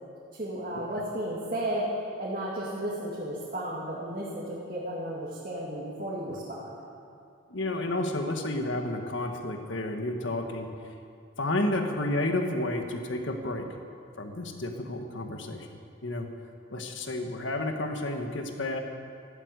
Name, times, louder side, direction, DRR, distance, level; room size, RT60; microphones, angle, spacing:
voice 1, 0.4-1.9 2.2-6.7, right 1 dB, 40° right, -7 dB, 2.5 m, -33 dB
voice 2, 7.5-10.7 11.4-13.7 14.2-15.7 16.0-16.3 16.7-18.8, left 1 dB, 60° left, 4 dB, 1.6 m, -31 dB
14.5 x 12.0 x 8.2 m, 2.4 s
head